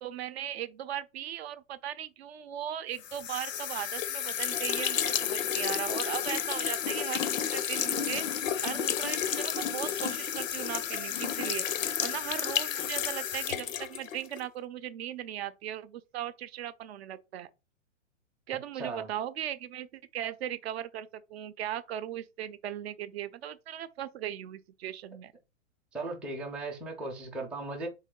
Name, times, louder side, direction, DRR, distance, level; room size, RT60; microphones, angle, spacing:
voice 1, 0.0-8.3 8.6-11.7 12.0-17.5 18.5-25.3, right 11 dB, 55° right, 0.6 m, -38 dB
sound 1, 3.0-14.4, left 9 dB, 85° left, 0.7 m, -31 dB
voice 2, 18.7-19.1 25.9-27.9, right 2 dB, 5° right, 0.5 m, -37 dB
3.2 x 3.2 x 3.6 m
hypercardioid pair, 130°, 38 cm